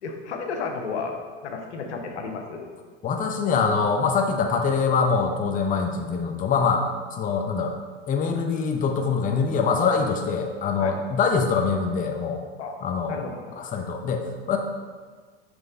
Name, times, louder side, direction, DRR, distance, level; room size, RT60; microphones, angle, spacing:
voice 1, 0.0-1.2 1.4-2.7 10.8-11.0 12.6-12.7 13.0-13.5, left 4 dB, 85° left, 3 dB, 0.9 m, -32 dB
voice 2, 3.0-6.9 7.2-7.7 8.1-12.4 12.8-13.2 13.6-14.6, left 5 dB, 25° left, 3 dB, 0.6 m, -24 dB
6.1 x 3.2 x 4.9 m, 1.5 s
hypercardioid pair, 100°, 33 cm